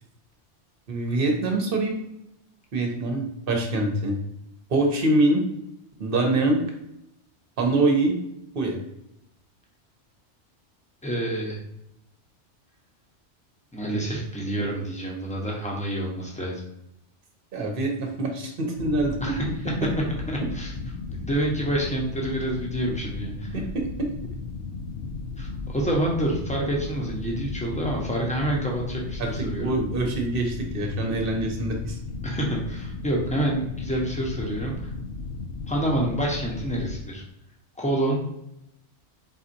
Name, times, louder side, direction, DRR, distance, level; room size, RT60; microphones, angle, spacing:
voice 1, 0.9-1.9 2.7-4.1 4.7-5.4 6.0-6.6 7.6-8.2 8.5-8.8 17.5-19.3 23.5-24.1 29.2-32.0, right 2 dB, 55° right, 2 dB, 1.1 m, -24 dB
voice 2, 11.0-11.6 13.7-16.6 19.2-19.4 20.3-20.7 21.1-23.6 25.4-29.7 32.2-34.9 35.7-37.2 37.8-38.2, right 1 dB, 5° left, -2 dB, 0.9 m, -28 dB
sound 1, 18.7-37.0, left 3 dB, 65° left, 0.8 m, -35 dB
4.3 x 4.0 x 2.7 m, 0.83 s
omnidirectional pair, 1.2 m